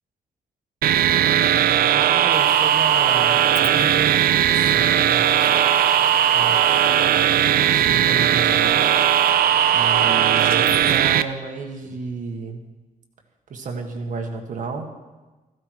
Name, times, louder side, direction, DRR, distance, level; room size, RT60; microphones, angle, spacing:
sound 1, 0.8-11.2, right 10 dB, 80° right, 0.6 m, -18 dB
voice 1, 1.9-5.9 6.3-6.9 7.7-8.8 9.7-12.6 13.5-14.9, right 4 dB, 60° right, 3 dB, 1.8 m, -32 dB
sound 2, 2.3-11.0, left 5 dB, 75° left, 1.2 m, -40 dB
15.5 x 15.0 x 4.8 m, 1.2 s
wide cardioid pair, 170°, 15 cm